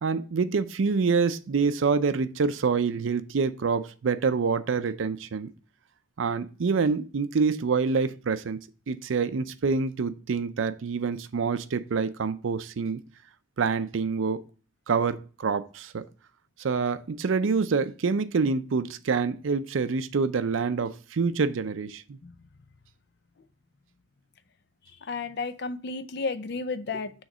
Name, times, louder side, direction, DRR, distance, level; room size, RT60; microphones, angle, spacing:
voice 1, 0.0-5.5 6.2-13.0 13.6-14.4 14.9-16.0 16.6-22.2, right 5 dB, 80° right, 0.5 m, -26 dB
voice 2, 25.1-27.1, left 4 dB, 60° left, 0.5 m, -32 dB
6.4 x 3.2 x 5.9 m
head